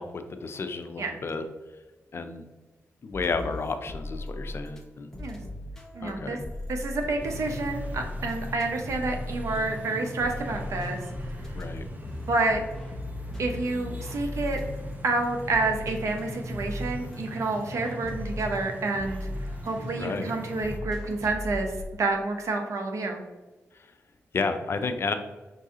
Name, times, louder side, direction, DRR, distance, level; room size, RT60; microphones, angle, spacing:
voice 1, 0.0-1.4 2.1-2.4 3.0-5.1 6.0-6.4 11.5-11.8 19.9-20.3 23.7-23.9 24.3-25.1, left 4 dB, 50° left, 8 dB, 0.5 m, -31 dB
sound 1, 3.1-4.8 5.1-21.8, left 1 dB, 10° left, 0.9 m, -38 dB
voice 2, 5.9-6.4 6.7-11.0 12.3-12.6 13.4-14.6 15.0-19.3 19.6-21.7 22.0-23.2, right 3 dB, 75° right, 3 dB, 0.8 m, -29 dB
sound 2, 7.2-20.8, equal, 35° right, 0.7 m, -40 dB
5.5 x 2.6 x 3.7 m, 1.2 s
cardioid pair, 75°, 5 cm